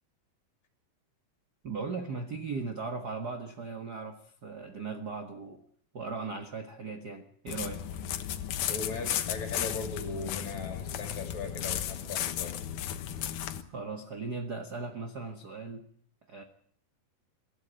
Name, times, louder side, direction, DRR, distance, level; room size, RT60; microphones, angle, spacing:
voice 1, 1.6-5.6 5.9-7.8 13.7-15.8 16.3-16.4, right 4 dB, 55° right, 6 dB, 1.1 m, -38 dB
sound 1, 7.5-13.6, left 10 dB, 70° left, 2.6 m, -34 dB
voice 2, 8.7-12.5, left 4 dB, 55° left, 5 dB, 4.3 m, -38 dB
23.5 x 13.5 x 8.9 m, 0.62 s
omnidirectional pair, 4.0 m